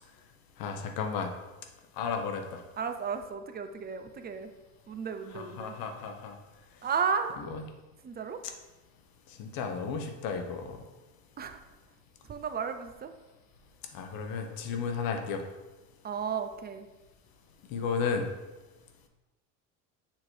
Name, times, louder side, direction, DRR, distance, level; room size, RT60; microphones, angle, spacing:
voice 1, 0.6-1.3 2.0-2.6 5.6-6.3 9.4-10.8 13.9-15.4 17.7-18.3, left 5 dB, 60° left, 5 dB, 1.1 m, -33 dB
voice 2, 2.8-4.5 4.9-5.8 6.8-7.4 8.0-8.4 11.4-11.6 12.2-13.1 16.0-16.9, right 6 dB, 25° right, 8 dB, 0.5 m, -33 dB
7.3 x 3.1 x 4.5 m, 1.1 s
supercardioid pair, 90°, 39 cm